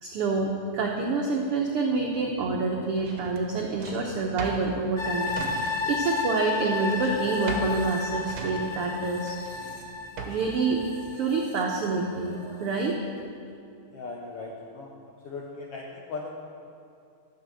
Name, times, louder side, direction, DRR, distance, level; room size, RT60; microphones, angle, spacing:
voice 1, 0.0-9.4 10.2-10.8 11.1-13.0, right 4 dB, 85° right, 0 dB, 1.2 m, -27 dB
Drawer open or close, 3.0-6.1 6.3-10.6, right 4 dB, 60° right, 1.5 m, -39 dB
sound 1, 5.0-12.3 12.7-12.8, left 4 dB, 55° left, 1.1 m, -33 dB
voice 2, 13.9-14.9 15.2-16.4, left 3 dB, 75° left, -1 dB, 1.4 m, -38 dB
12.0 x 6.9 x 7.7 m, 2.5 s
omnidirectional pair, 3.7 m